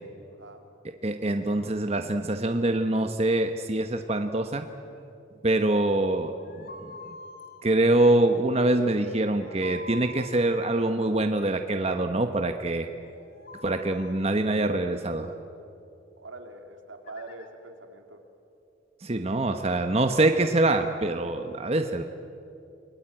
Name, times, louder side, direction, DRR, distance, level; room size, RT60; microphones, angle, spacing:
voice 1, 1.0-4.7 5.4-6.9 7.6-12.9 13.6-15.3 19.0-22.0, right 2 dB, 30° right, 6 dB, 1.0 m, -24 dB
sound 1, 6.4-7.6 9.2-10.6 13.0-14.3 17.0-17.5, left 3 dB, 50° left, 2.5 m, -45 dB
voice 2, 16.2-18.2, right 2 dB, 85° right, 4 dB, 3.0 m, -43 dB
29.0 x 21.5 x 8.9 m, 2.7 s
head